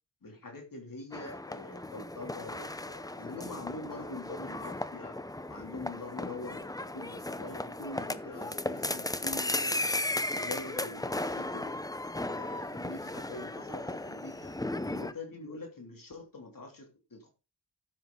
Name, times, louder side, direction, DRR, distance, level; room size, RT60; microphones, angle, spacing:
voice 1, 0.2-5.1 5.5-9.9 10.3-11.7 12.3-14.5 14.8-17.3, left 3 dB, 55° left, 1 dB, 3.0 m, -44 dB
sound 1, 1.1-15.1, left 1 dB, 10° left, 0.7 m, -36 dB
12.5 x 7.6 x 3.8 m, 0.30 s
wide cardioid pair, 75°, 40 cm